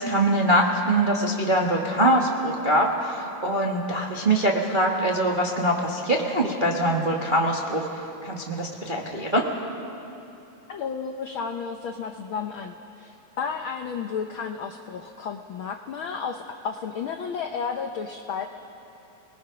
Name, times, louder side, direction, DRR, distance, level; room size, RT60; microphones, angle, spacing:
voice 1, 0.0-9.5, right 1 dB, 35° right, -1 dB, 0.7 m, -23 dB
voice 2, 10.7-18.5, left 6 dB, 90° left, 5 dB, 1.1 m, -32 dB
29.5 x 20.0 x 5.7 m, 2.9 s
omnidirectional pair, 3.4 m